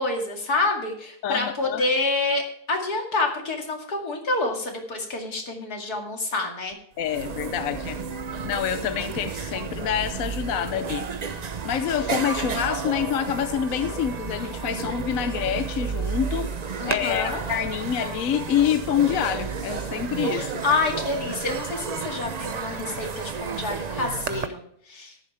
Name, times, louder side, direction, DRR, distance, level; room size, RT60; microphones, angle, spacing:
voice 1, 0.0-6.7 16.8-17.4 20.3-24.6 24.9-25.1, left 3 dB, 80° left, 1 dB, 2.8 m, -27 dB
voice 2, 1.2-1.8 7.0-8.0 8.4-11.1 11.6-20.6, left 9 dB, 65° left, 10 dB, 1.0 m, -27 dB
sound 1, 6.7-6.8 7.0-24.5, right 5 dB, 45° right, 0.5 m, -32 dB
13.5 x 11.0 x 3.3 m, 0.65 s
omnidirectional pair, 1.6 m